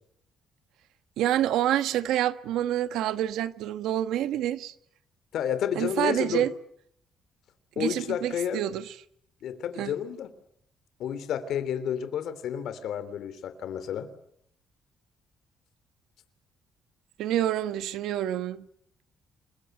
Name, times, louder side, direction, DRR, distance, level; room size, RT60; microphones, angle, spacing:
voice 1, 1.2-4.7 5.7-6.5 7.8-8.9 9.8-9.9 17.2-18.7, right 12 dB, 85° right, 1.4 m, -27 dB
voice 2, 5.3-6.5 7.8-8.6 9.4-10.3 11.0-14.1, left 9 dB, 60° left, 3.2 m, -31 dB
28.5 x 22.5 x 8.0 m
cardioid pair, 170°, 0 cm